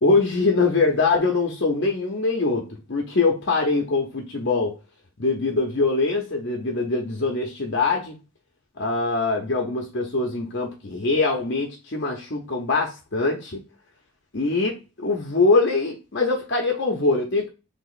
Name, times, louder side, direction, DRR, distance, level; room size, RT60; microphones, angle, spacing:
voice 1, 0.0-4.7 5.2-8.2 8.8-13.6 14.3-17.5, left 3 dB, 55° left, 1 dB, 0.8 m, -23 dB
3.5 x 3.0 x 4.0 m, 0.29 s
head